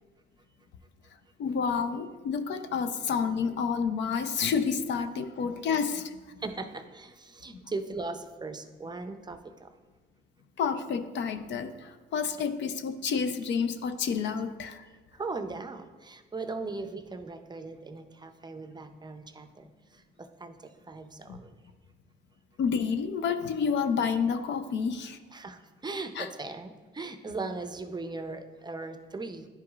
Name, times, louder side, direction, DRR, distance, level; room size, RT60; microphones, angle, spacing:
voice 1, 1.4-6.4 10.6-14.8 21.3-21.4 22.6-25.2 26.1-26.3, left 6 dB, 65° left, 8 dB, 0.5 m, -29 dB
voice 2, 6.4-9.7 15.1-19.7 19.9-21.5 25.3-29.5, right 3 dB, 20° right, 8 dB, 0.5 m, -39 dB
11.0 x 4.8 x 2.4 m, 1.3 s
cardioid pair, 90°, 20 cm